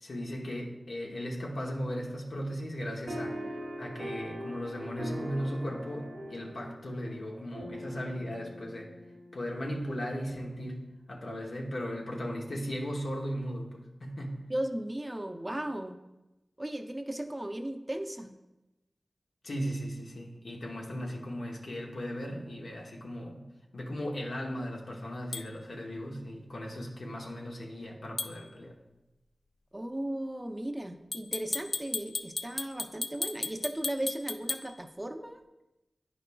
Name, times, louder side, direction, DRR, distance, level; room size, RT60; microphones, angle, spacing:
voice 1, 0.0-3.4 3.8-8.9 9.3-14.5 19.4-23.5 23.7-28.8, equal, 80° left, 0 dB, 1.0 m, -37 dB
sound 1, 3.1-9.9, equal, 60° right, 0.9 m, -42 dB
voice 2, 14.5-16.0 16.6-18.3 29.7-35.4, right 1 dB, 20° right, 5 dB, 0.5 m, -36 dB
sound 2, 25.3-25.5 28.2-28.4 31.1-34.7, left 3 dB, 50° left, 0.4 m, -35 dB
9.7 x 5.0 x 2.3 m, 0.98 s
wide cardioid pair, 60°, 0 cm